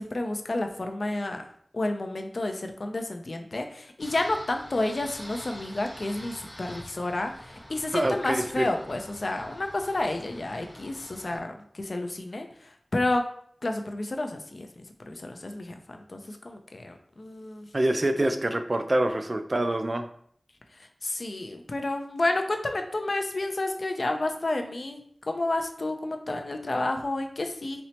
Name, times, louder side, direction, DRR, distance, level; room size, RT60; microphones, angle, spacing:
voice 1, 0.0-1.4 1.7-13.2 13.6-17.7 21.0-25.0 25.3-27.8, left 2 dB, 75° left, 5 dB, 0.4 m, -30 dB
sound 1, 4.0-11.4, equal, 10° left, 0.8 m, -46 dB
voice 2, 7.9-8.7 17.7-20.1, right 1 dB, 45° right, 7 dB, 0.3 m, -26 dB
4.2 x 2.0 x 2.8 m, 0.63 s
wide cardioid pair, 60°, 0 cm